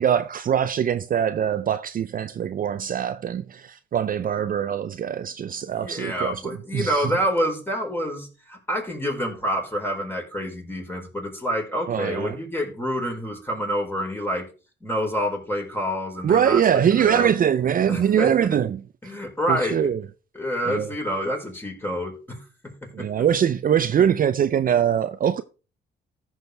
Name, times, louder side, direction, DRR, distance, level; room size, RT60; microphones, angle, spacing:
voice 1, 0.0-7.1 11.9-12.3 16.2-18.8 19.5-20.0 20.7-20.9 22.9-25.4, right 9 dB, 45° right, 0.5 m, -22 dB
voice 2, 5.7-14.4 14.8-16.6 16.9-17.3 17.9-18.6 19.0-19.9 20.3-23.2, equal, 10° left, 4.5 m, -28 dB
15.0 x 6.3 x 3.4 m
cardioid pair, 90°, 20 cm